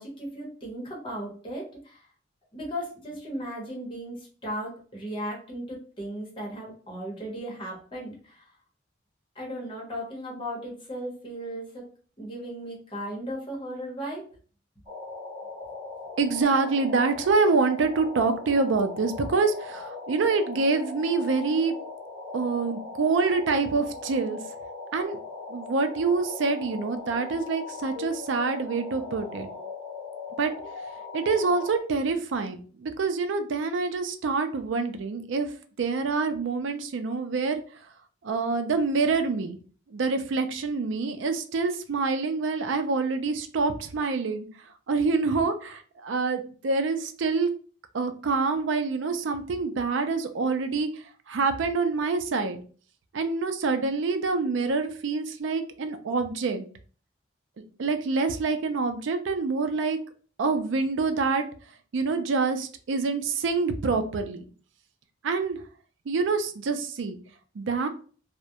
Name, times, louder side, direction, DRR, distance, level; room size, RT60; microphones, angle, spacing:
voice 1, 0.0-2.0 2.5-8.5 9.3-11.8 12.2-14.2, equal, 25° left, -2 dB, 0.8 m, -36 dB
sound 1, 14.9-31.8, left 3 dB, 20° right, 0.9 m, -39 dB
voice 2, 16.2-21.7 22.3-24.4 24.9-25.2 25.5-29.5 30.4-30.5 31.1-35.5 35.8-37.6 38.2-39.6 39.9-44.5 44.9-47.5 47.9-52.6 53.1-56.6 57.8-60.0 60.4-61.4 61.9-64.5 65.2-65.6 66.1-67.2 67.6-67.9, right 4 dB, 75° right, 8 dB, 0.4 m, -26 dB
2.3 x 2.1 x 2.7 m, 0.41 s
head